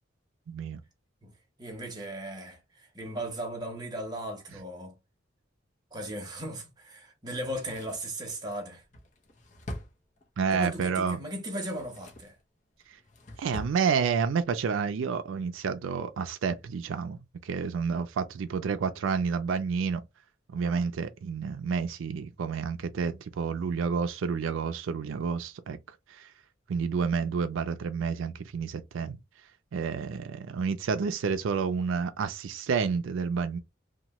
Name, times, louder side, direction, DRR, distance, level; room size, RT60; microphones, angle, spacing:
voice 1, 0.5-0.8 10.4-11.2 13.4-20.0 20.5-25.8 26.1-26.3 26.7-29.2 29.7-33.6, right 5 dB, 80° right, 0.4 m, -29 dB
voice 2, 1.6-5.0 5.9-8.8 10.5-12.4, right 1 dB, 20° right, 0.9 m, -37 dB
Drawer open or close, 7.3-10.6 11.5-12.4 12.8-13.8 14.1-14.2, left 1 dB, 40° left, 0.6 m, -44 dB
2.9 x 2.2 x 2.9 m
head